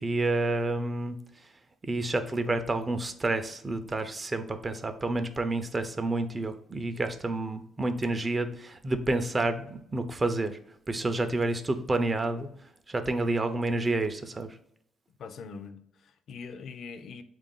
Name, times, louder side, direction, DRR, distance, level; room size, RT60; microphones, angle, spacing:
voice 1, 0.0-1.2 1.8-10.6 10.9-12.5 12.9-14.5, right 2 dB, 25° right, 8 dB, 0.5 m, -29 dB
voice 2, 15.2-17.2, left 5 dB, 65° left, 10 dB, 0.4 m, -43 dB
3.5 x 2.5 x 3.7 m, 0.70 s
cardioid pair, 90°, 0 cm